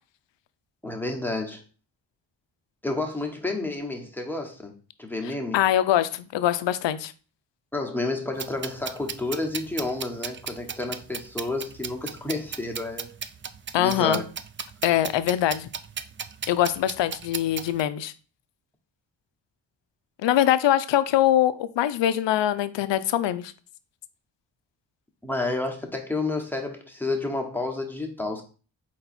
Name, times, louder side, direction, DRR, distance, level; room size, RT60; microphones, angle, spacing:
voice 1, 0.8-1.6 2.8-4.7 5.0-5.6 7.7-13.1 13.8-14.2 25.2-28.4, left 2 dB, 5° left, 1.2 m, -30 dB
voice 2, 5.5-7.1 13.7-14.2 14.8-15.7 16.5-18.1 20.2-23.5, left 12 dB, 65° left, 0.5 m, -23 dB
sound 1, 8.4-17.8, right 6 dB, 25° right, 0.4 m, -36 dB
4.0 x 3.0 x 4.3 m
cardioid pair, 45°, 47 cm